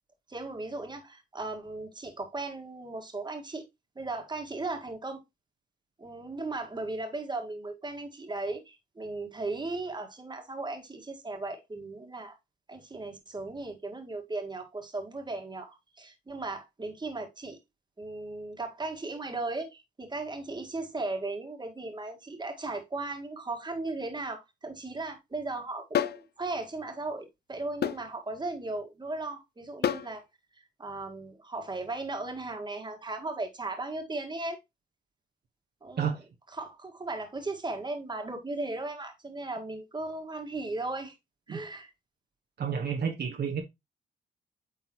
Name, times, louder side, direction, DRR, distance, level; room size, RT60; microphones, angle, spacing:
voice 1, 0.3-3.6 4.0-5.2 6.0-12.4 12.7-17.6 18.0-30.2 30.6-34.6 35.8-36.2 36.5-41.1 41.5-41.9 42.7-42.8, right 2 dB, 25° right, 1.8 m, -37 dB
sound 1, 25.9-26.2 27.8-28.0 29.8-30.1, left 10 dB, 60° left, 0.5 m, -27 dB
voice 2, 42.6-43.6, right 7 dB, 60° right, 1.3 m, -30 dB
8.6 x 3.9 x 3.0 m
cardioid pair, 85°, 19 cm